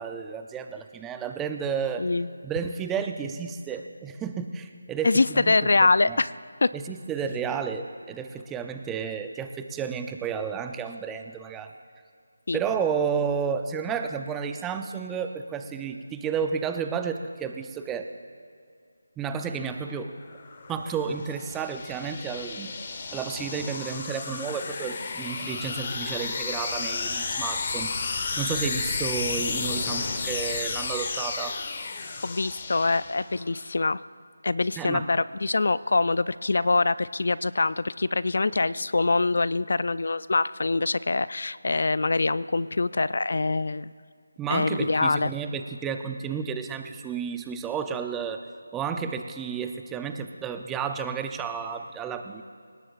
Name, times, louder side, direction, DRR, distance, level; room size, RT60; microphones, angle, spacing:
voice 1, 0.0-2.0 2.4-6.2 6.7-11.7 12.5-18.0 19.2-20.1 20.7-22.7 23.1-27.9 28.4-31.6 34.8-35.1 44.4-48.4 48.7-52.4, right 6 dB, 10° right, 7 dB, 0.5 m, -31 dB
voice 2, 2.0-2.3 5.0-6.3 6.6-6.7 12.5-12.6 32.2-34.0 34.4-43.9 44.5-45.3, left 3 dB, 60° left, 17 dB, 0.4 m, -24 dB
sound 1, 20.0-33.5, left 4 dB, 35° left, 1.2 m, -32 dB
24.5 x 19.0 x 2.5 m, 2.3 s
figure-of-eight pair, 165°, 0 cm